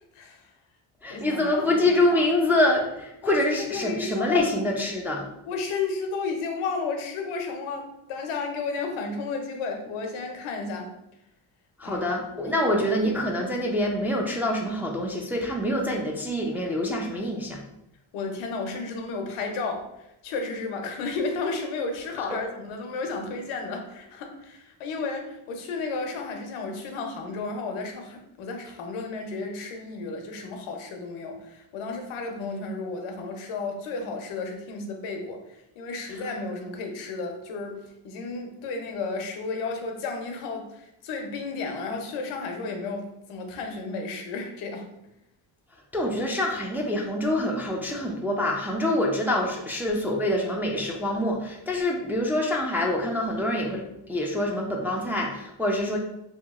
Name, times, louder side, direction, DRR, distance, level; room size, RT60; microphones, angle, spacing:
voice 1, 0.1-0.5 1.1-1.7 3.2-4.5 5.4-10.9 11.8-12.1 12.4-12.7 18.1-19.9 20.2-37.8 38.0-44.9, left 4 dB, 85° left, 4 dB, 0.7 m, -33 dB
voice 2, 1.0-5.3 11.8-17.6 22.2-22.3 36.1-36.2 45.9-56.0, left 1 dB, 5° right, -1 dB, 0.4 m, -26 dB
2.9 x 2.6 x 2.3 m, 0.84 s
supercardioid pair, 70°, 49 cm